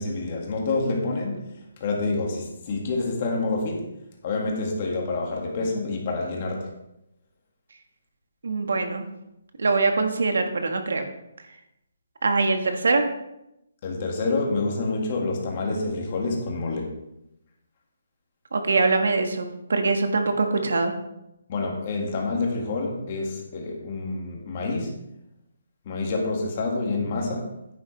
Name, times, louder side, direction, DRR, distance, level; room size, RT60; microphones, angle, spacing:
voice 1, 0.0-1.4 1.8-3.9 4.2-6.7 13.8-16.9 21.5-24.9 25.9-27.5, left 3 dB, 25° left, 0 dB, 1.9 m, -27 dB
voice 2, 8.4-9.0 9.6-11.0 12.2-13.1 18.5-20.9, right 3 dB, 75° right, 5 dB, 1.6 m, -23 dB
10.0 x 10.0 x 3.3 m, 0.86 s
hypercardioid pair, 180°, 0 cm